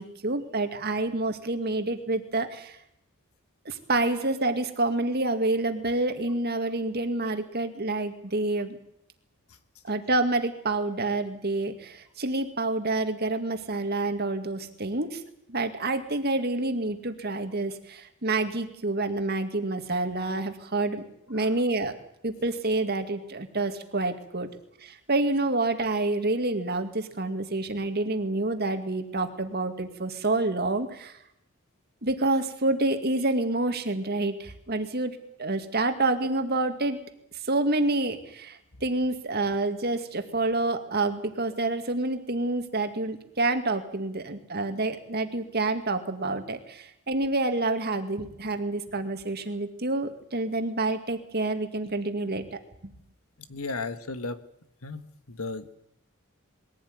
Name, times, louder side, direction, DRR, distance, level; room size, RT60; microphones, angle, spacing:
voice 1, 0.0-2.8 3.7-8.8 9.9-15.2 15.5-21.9 22.2-24.5 24.8-31.2 32.0-37.0 37.4-52.9, right 2 dB, 45° right, 7 dB, 2.2 m, -28 dB
voice 2, 53.5-54.4 54.8-55.0 55.3-55.7, left 3 dB, 80° left, 11 dB, 1.5 m, -34 dB
21.5 x 16.0 x 9.5 m, 0.76 s
head